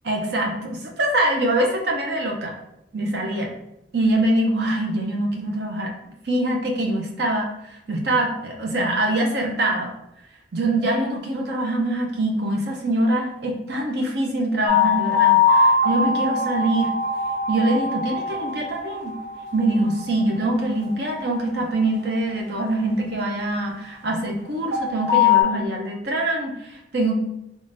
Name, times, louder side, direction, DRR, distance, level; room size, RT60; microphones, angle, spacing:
voice 1, 0.0-2.5 2.9-3.5 3.9-5.9 6.2-9.9 10.5-16.9 17.5-19.2 19.5-27.1, right 1 dB, 65° right, 1 dB, 0.7 m, -24 dB
sound 1, 14.7-23.7 24.7-25.4, left 5 dB, 85° right, 1.0 m, -22 dB
3.7 x 3.1 x 2.6 m, 0.85 s
head